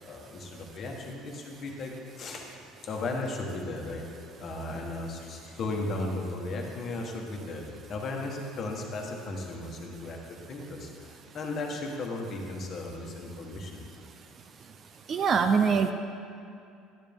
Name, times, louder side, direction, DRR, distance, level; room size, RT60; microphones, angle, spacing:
voice 1, 0.0-2.5 2.8-4.0 4.4-10.2 10.5-13.8, left 2 dB, 35° left, 1 dB, 1.3 m, -36 dB
voice 2, 15.1-15.9, right 6 dB, 30° right, 7 dB, 0.4 m, -23 dB
11.5 x 10.0 x 3.6 m, 2.6 s
cardioid pair, 160°, 0 cm